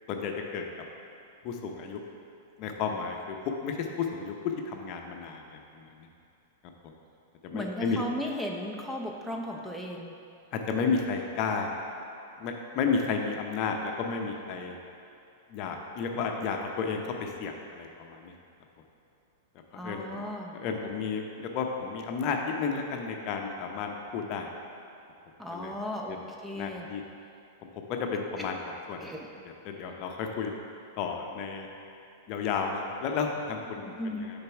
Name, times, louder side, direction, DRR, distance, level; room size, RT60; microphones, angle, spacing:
voice 1, 0.1-0.6 1.4-2.0 2.6-3.4 3.6-6.1 7.4-8.0 10.5-11.7 12.4-14.8 15.5-18.3 19.7-20.2 20.5-24.5 25.5-25.7 26.5-27.0 28.0-28.6 28.9-29.1 29.7-30.5 31.0-31.7 32.3-34.2, left 5 dB, 45° left, 2 dB, 0.7 m, -32 dB
voice 2, 7.5-10.1 19.7-20.6 25.4-26.9 28.4-28.5 29.0-29.3 33.5-34.3, left 1 dB, 5° right, 0 dB, 0.6 m, -36 dB
6.8 x 4.0 x 4.6 m, 2.5 s
hypercardioid pair, 110°, 0 cm